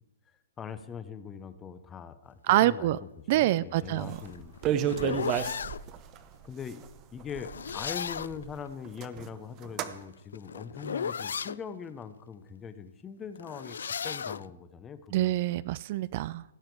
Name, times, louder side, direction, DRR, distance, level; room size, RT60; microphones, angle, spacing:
voice 1, 0.6-5.3 6.4-15.4, left 7 dB, 15° left, 12 dB, 0.7 m, -42 dB
voice 2, 2.5-3.0 3.3-4.2 15.1-16.4, right 15 dB, 45° right, 19 dB, 0.3 m, -26 dB
sound 1, 4.0-5.8 7.3-8.5 9.9-11.6 13.3-14.5, left 7 dB, 85° left, 0.3 m, -35 dB
sound 2, 4.1-4.2 4.4-6.2 6.8-6.9 7.2-8.5 8.8-9.3 9.6-9.9, right 10 dB, 25° right, 0.7 m, -31 dB
16.5 x 7.5 x 4.6 m, 0.91 s
hypercardioid pair, 150°, 0 cm